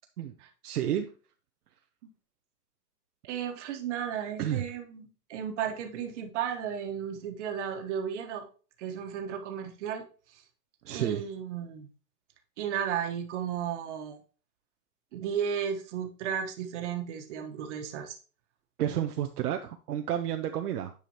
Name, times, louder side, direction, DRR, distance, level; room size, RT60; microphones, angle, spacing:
voice 1, 0.6-1.1 4.4-4.6 10.8-11.2 18.8-20.9, right 10 dB, 70° right, 6 dB, 0.7 m, -30 dB
voice 2, 3.2-8.4 8.8-10.0 10.3-10.4 10.9-11.9 12.6-14.2 15.1-18.2, right 8 dB, 45° right, 5 dB, 1.4 m, -34 dB
9.5 x 4.9 x 3.0 m, 0.37 s
hypercardioid pair, 140°, 48 cm